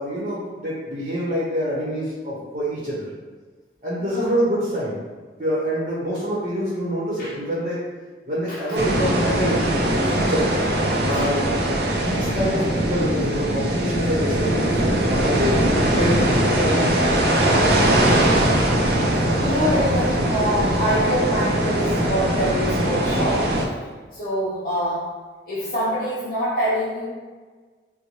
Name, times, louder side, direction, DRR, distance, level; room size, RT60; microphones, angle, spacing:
voice 1, 0.0-3.1 3.8-5.0 5.4-7.8 8.3-9.6 9.9-10.5 11.0-15.6 16.0-17.0, equal, 40° right, -7 dB, 0.9 m, -26 dB
voice 2, 4.0-4.3 7.2-7.3 8.5-8.8 11.1-11.3 18.0-18.4 19.1-25.1 25.5-27.1, equal, 50° left, -9 dB, 0.8 m, -26 dB
sound 1, 8.8-23.7, right 1 dB, 65° right, 0.5 m, -21 dB
4.2 x 2.2 x 3.1 m, 1.4 s
head